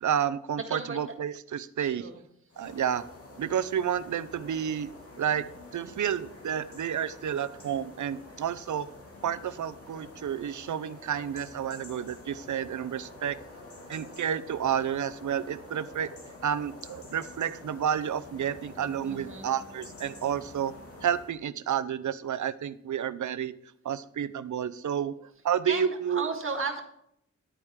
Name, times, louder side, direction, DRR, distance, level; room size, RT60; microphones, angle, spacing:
voice 1, 0.0-2.1 2.6-3.0 3.4-4.9 5.2-5.4 5.7-8.9 9.2-13.4 13.9-16.1 16.4-20.7 21.0-23.5 23.8-26.3, right 9 dB, 80° right, 14 dB, 0.6 m, -30 dB
voice 2, 0.7-1.0 1.8-2.2 19.0-19.5 25.7-26.8, right 4 dB, 45° right, 4 dB, 1.8 m, -34 dB
sound 1, 2.5-21.4, left 2 dB, 50° left, 2.4 m, -48 dB
11.5 x 8.8 x 3.6 m, 0.72 s
wide cardioid pair, 95°, 29 cm